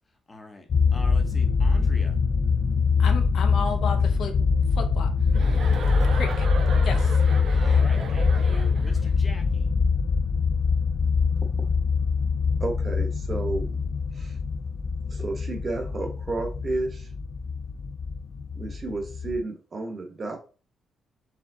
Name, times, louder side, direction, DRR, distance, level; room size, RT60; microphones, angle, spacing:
voice 1, 0.3-2.2 6.9-7.1 7.5-9.7, left 2 dB, 20° left, 5 dB, 0.8 m, -44 dB
sound 1, 0.7-19.4, left 5 dB, 45° left, 0.4 m, -23 dB
voice 2, 3.0-4.4 4.8-5.1 6.1-6.5 6.8-7.2, left 5 dB, 65° left, 6 dB, 0.7 m, -32 dB
Chuckle chortle, 5.3-9.1, right 5 dB, 55° right, 0.7 m, -36 dB
voice 3, 12.6-13.8 14.1-14.4 15.1-17.1 18.5-20.4, right 2 dB, 30° right, 4 dB, 0.9 m, -31 dB
4.3 x 3.5 x 2.7 m, 0.35 s
cardioid pair, 150°, 0 cm